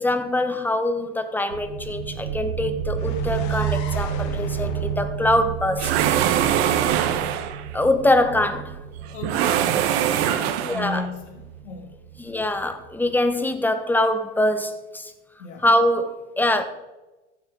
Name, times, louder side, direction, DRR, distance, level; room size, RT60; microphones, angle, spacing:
voice 1, 0.0-5.9 7.7-8.8 10.6-11.0 12.2-15.1 15.6-16.6, left 1 dB, 5° left, 8 dB, 1.1 m, -23 dB
sound 1, 1.5-12.9, right 8 dB, 90° right, 1.1 m, -31 dB
sound 2, 3.0-6.8, left 8 dB, 55° left, 1.5 m, -40 dB
sound 3, 5.8-7.6 9.2-11.0, right 10 dB, 60° right, 1.1 m, -22 dB
voice 2, 6.3-6.8 9.1-12.0 15.4-15.6, left 3 dB, 85° left, 1 dB, 2.3 m, -36 dB
14.5 x 7.3 x 3.7 m, 1.1 s
hypercardioid pair, 95°, 35 cm